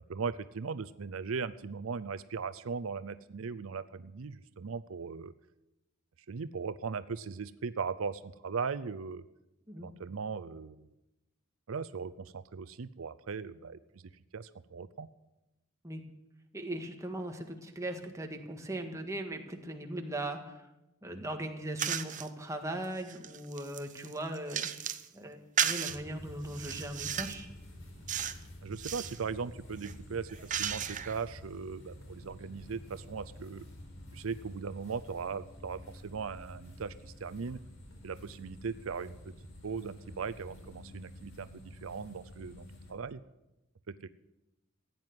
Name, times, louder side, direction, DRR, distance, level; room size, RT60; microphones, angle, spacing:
voice 1, 0.1-5.3 6.3-9.2 9.8-10.9 11.7-14.0 14.3-15.1 28.6-33.7 34.1-37.6 38.0-39.2 39.6-43.2 43.9-44.1, right 5 dB, 85° right, 14 dB, 0.6 m, -38 dB
voice 2, 16.5-20.7 21.0-24.7 25.1-27.5, right 1 dB, 15° right, 3 dB, 1.7 m, -39 dB
sound 1, 21.8-22.3 22.8-25.1 25.6-26.0 26.5-27.4 28.1-28.4 28.7-29.2 29.8-31.2, right 9 dB, 40° right, 0.8 m, -35 dB
sound 2, 25.9-42.9, left 1 dB, 80° left, 4.1 m, -50 dB
15.5 x 9.3 x 9.5 m, 0.97 s
head